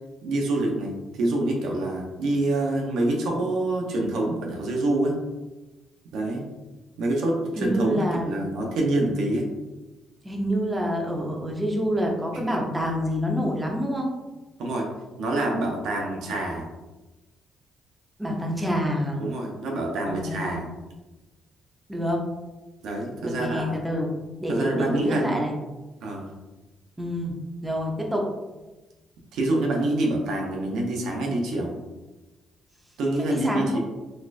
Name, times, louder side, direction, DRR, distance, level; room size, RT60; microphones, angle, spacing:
voice 1, 0.2-5.2 6.1-6.4 7.0-9.5 12.3-12.5 14.6-14.9 15.2-16.7 19.2-20.7 22.8-23.8 24.5-25.4 26.0-26.3 29.3-31.7 33.0-33.8, right 1 dB, 80° right, 0 dB, 0.7 m, -26 dB
voice 2, 7.6-8.3 10.2-14.1 18.2-19.2 20.1-20.6 21.9-22.2 23.2-24.1 24.4-25.5 27.0-27.3 27.6-28.3 33.2-33.8, equal, 10° right, 0 dB, 0.7 m, -27 dB
4.1 x 2.4 x 2.5 m, 1.1 s
cardioid pair, 90°, 0 cm